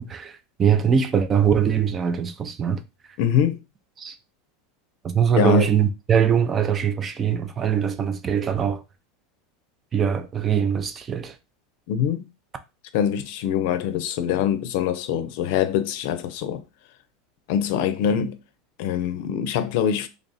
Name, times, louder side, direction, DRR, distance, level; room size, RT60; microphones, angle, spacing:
voice 1, 0.0-2.8 4.0-4.1 5.0-8.8 9.9-11.3, right 8 dB, 25° right, 0.5 m, -22 dB
voice 2, 3.2-3.6 5.3-5.7 11.9-12.3 12.9-16.6 17.5-18.4 18.8-20.1, left 9 dB, 65° left, 0.5 m, -23 dB
3.4 x 2.5 x 4.0 m
supercardioid pair, 125°, 0 cm